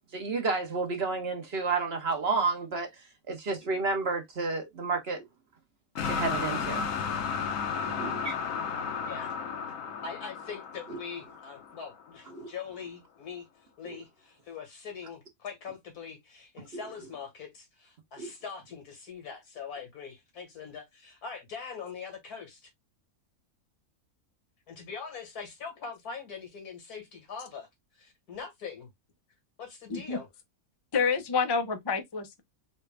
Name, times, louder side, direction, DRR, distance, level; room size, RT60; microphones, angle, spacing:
voice 1, 0.1-2.9 3.3-5.2 6.1-6.9 7.9-8.3 12.3-12.5 18.2-18.3, right 4 dB, 50° right, 1.0 m, -30 dB
sound 1, 6.0-12.0, left 6 dB, 65° left, 1.0 m, -33 dB
voice 2, 10.0-13.5 13.8-22.7 24.7-27.7 28.0-28.9 29.6-30.3, left 6 dB, 85° left, 2.2 m, -42 dB
voice 3, 30.9-32.4, left 5 dB, 40° left, 0.3 m, -28 dB
4.1 x 2.3 x 3.2 m
omnidirectional pair, 1.6 m